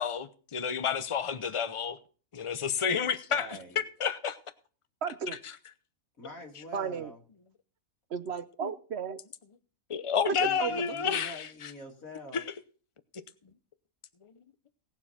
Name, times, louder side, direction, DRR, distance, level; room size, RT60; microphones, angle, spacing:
voice 1, 0.0-2.0 2.3-3.5 4.0-4.4 8.6-8.7 9.9-11.7 12.3-12.4 13.1-13.2, left 7 dB, 30° left, 0.7 m, -30 dB
voice 2, 3.3-3.8 6.2-7.2 10.4-12.4, left 1 dB, 85° left, 2.9 m, -45 dB
voice 3, 5.0-5.4 6.7-7.1 8.1-9.2 10.3-11.2, right 6 dB, 55° right, 1.0 m, -34 dB
18.5 x 7.3 x 4.2 m
omnidirectional pair, 1.4 m